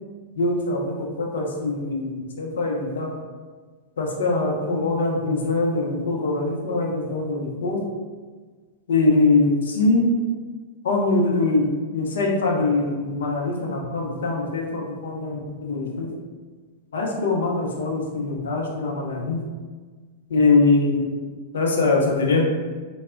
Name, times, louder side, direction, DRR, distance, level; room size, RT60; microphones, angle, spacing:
voice 1, 0.4-3.1 4.0-7.8 8.9-10.1 10.8-11.7 11.9-16.1 16.9-19.4 20.3-21.1 21.5-22.4, left 3 dB, 70° left, -1 dB, 0.5 m, -22 dB
3.2 x 2.0 x 2.4 m, 1.5 s
figure-of-eight pair, 100°, 0 cm